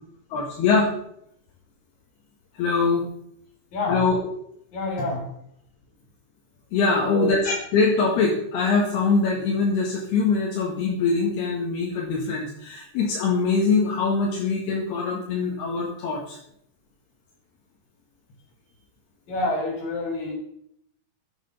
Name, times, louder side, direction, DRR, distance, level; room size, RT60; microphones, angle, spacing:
voice 1, 0.3-0.9 2.6-3.0 3.9-4.2 6.7-16.4, left 4 dB, 70° left, -3 dB, 3.9 m, -23 dB
voice 2, 3.7-4.1 4.7-5.2 7.0-7.4 19.3-20.3, left 2 dB, 45° left, 1 dB, 5.6 m, -27 dB
15.0 x 8.9 x 5.6 m, 0.71 s
omnidirectional pair, 4.9 m